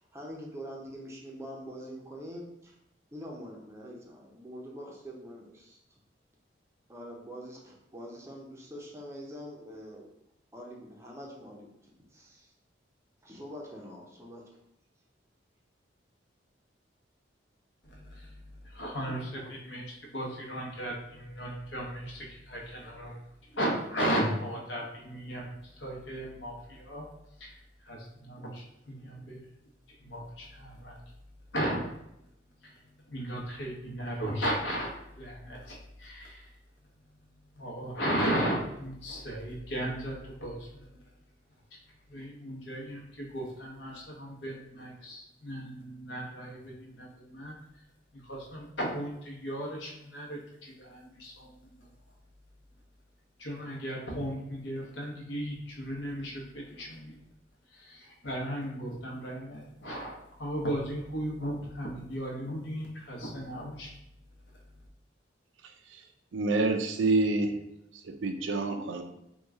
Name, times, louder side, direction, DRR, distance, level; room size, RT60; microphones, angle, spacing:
voice 1, 0.0-2.7 3.1-5.8 6.9-10.1 10.5-11.7 12.1-12.5 13.2-14.4, equal, 15° right, -2 dB, 0.6 m, -44 dB
voice 2, 17.8-23.2 23.5-27.1 27.4-27.6 27.8-29.4 30.0-31.0 31.5-31.8 32.6-32.7 33.0-36.5 37.6-41.0 42.1-47.5 48.2-51.7 53.4-57.2 57.7-63.9, equal, 70° left, -2 dB, 0.9 m, -36 dB
voice 3, 66.3-67.5 68.0-69.0, right 3 dB, 90° right, 5 dB, 0.4 m, -27 dB
2.9 x 2.3 x 3.5 m, 0.83 s
head